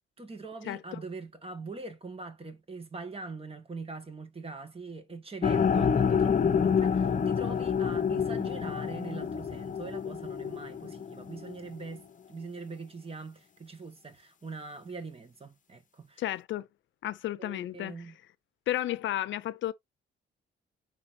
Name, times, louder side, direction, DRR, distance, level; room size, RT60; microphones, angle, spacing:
voice 1, 0.2-16.2 17.4-18.2, right 3 dB, 30° right, 1.9 m, -42 dB
sound 1, 5.4-11.6, left 7 dB, 40° left, 0.8 m, -28 dB
voice 2, 16.2-16.7 17.0-17.9 18.7-19.7, left 13 dB, 70° left, 0.6 m, -32 dB
9.7 x 3.4 x 2.9 m
cardioid pair, 90°, 20 cm